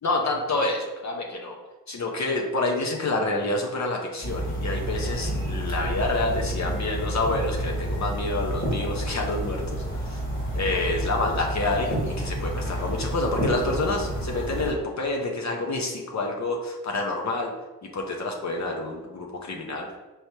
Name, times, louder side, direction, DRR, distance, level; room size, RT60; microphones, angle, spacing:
voice 1, 0.0-1.6 1.9-10.2 10.5-17.5 17.8-20.0, left 2 dB, 50° left, 0 dB, 0.7 m, -28 dB
sound 1, 4.2-14.7, right 1 dB, 30° left, 1.5 m, -29 dB
4.7 x 3.1 x 2.8 m, 1.1 s
cardioid pair, 65°, 37 cm